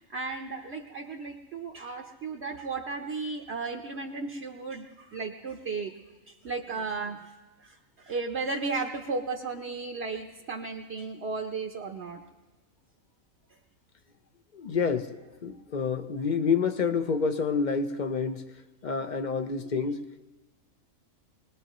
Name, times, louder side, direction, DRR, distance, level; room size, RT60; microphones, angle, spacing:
voice 1, 0.0-6.0 6.3-7.3 7.6-12.2, right 4 dB, 55° right, 1 dB, 1.0 m, -35 dB
voice 2, 14.5-18.4 18.8-20.0, left 5 dB, 45° left, 9 dB, 0.6 m, -28 dB
24.0 x 20.0 x 3.0 m, 1.2 s
omnidirectional pair, 1.4 m